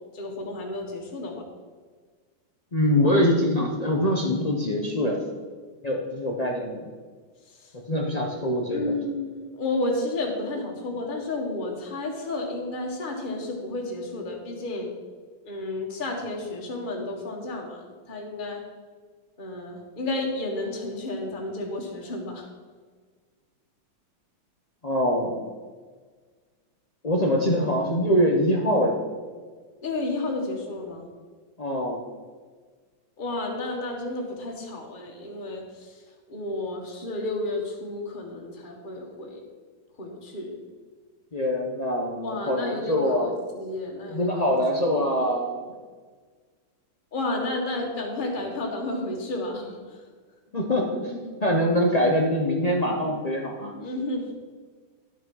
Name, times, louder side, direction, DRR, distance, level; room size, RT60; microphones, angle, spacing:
voice 1, 0.1-1.4 7.4-7.7 8.7-14.9 15.4-18.6 19.4-22.5 29.8-31.1 33.2-36.0 36.3-39.4 40.0-40.5 42.2-44.3 47.1-50.0 53.7-54.3, left 2 dB, 25° left, 0 dB, 1.6 m, -32 dB
voice 2, 2.7-5.2 5.8-6.9 7.9-9.0 24.8-25.4 27.0-29.0 31.6-32.0 41.3-43.3 44.1-45.7 50.5-53.7, equal, 75° left, -1 dB, 0.3 m, -24 dB
11.0 x 6.3 x 5.4 m, 1.5 s
omnidirectional pair, 2.3 m